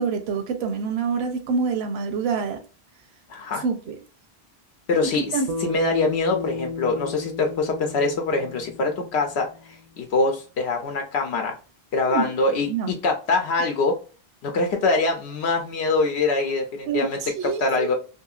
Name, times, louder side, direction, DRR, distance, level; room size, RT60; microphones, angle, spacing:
voice 1, 0.0-2.6 3.6-4.0 5.1-5.5 12.1-12.3 12.7-12.9 16.9-17.9, right 5 dB, 80° right, 0.8 m, -26 dB
voice 2, 3.3-3.6 4.9-5.3 5.6-11.5 11.9-14.0 14.4-17.9, left 3 dB, 80° left, 0.9 m, -24 dB
Bass guitar, 5.5-9.9, left 3 dB, 55° right, 0.5 m, -33 dB
2.8 x 2.7 x 2.3 m
omnidirectional pair, 1.1 m